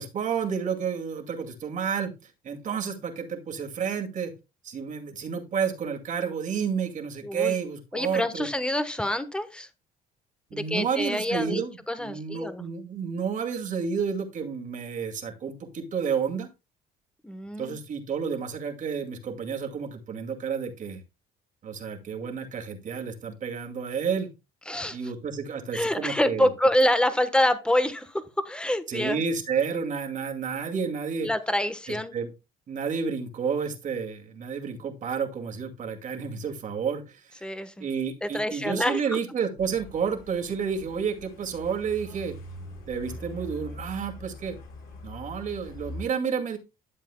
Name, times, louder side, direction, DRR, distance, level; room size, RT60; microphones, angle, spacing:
voice 1, 0.0-4.3 4.6-8.5 10.5-16.5 17.6-21.0 21.6-24.3 24.9-26.5 28.9-31.3 31.9-32.3 32.7-37.4 37.8-42.4 42.9-44.6 45.0-46.6, right 6 dB, 50° right, 3 dB, 2.2 m, -30 dB
voice 2, 7.2-7.6 7.9-9.7 10.5-11.6 11.9-12.6 17.2-17.8 24.7-25.0 25.7-29.2 31.2-32.1 37.4-37.9 38.2-39.2, left 1 dB, 5° left, 11 dB, 1.1 m, -26 dB
Truck, 39.6-46.0, left 1 dB, 65° left, 5.2 m, -43 dB
12.5 x 7.5 x 2.2 m, 0.27 s
cardioid pair, 110°, 17 cm